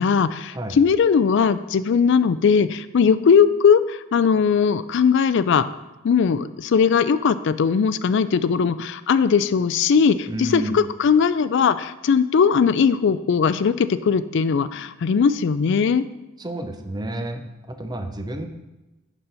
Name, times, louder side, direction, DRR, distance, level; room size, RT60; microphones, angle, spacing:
voice 1, 0.0-5.7 6.0-16.0, left 6 dB, 55° left, 14 dB, 0.3 m, -19 dB
voice 2, 10.3-10.8 16.4-18.5, right 1 dB, 20° right, 6 dB, 0.6 m, -30 dB
11.0 x 4.1 x 4.4 m, 1.0 s
head